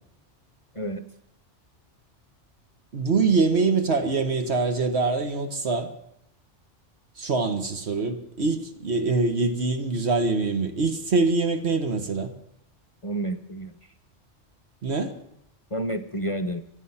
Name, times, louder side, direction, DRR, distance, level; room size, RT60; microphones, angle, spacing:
voice 1, 2.9-5.9 7.2-12.3 14.8-15.1, right 4 dB, 65° right, 1.7 m, -24 dB
voice 2, 13.0-13.7 15.7-16.6, right 1 dB, 35° left, 0.7 m, -29 dB
24.0 x 9.1 x 5.8 m
omnidirectional pair, 1.2 m